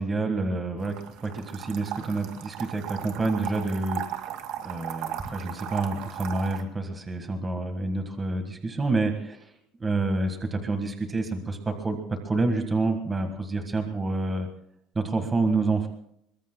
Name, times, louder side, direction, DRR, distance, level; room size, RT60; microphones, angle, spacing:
voice 1, 0.0-4.3 4.6-9.5 9.8-14.5 15.0-15.9, right 3 dB, 15° right, 5 dB, 1.6 m, -28 dB
sound 1, 0.8-6.6, right 11 dB, 65° right, 2.1 m, -36 dB
25.0 x 22.0 x 2.3 m, 0.72 s
cardioid pair, 165°, 0 cm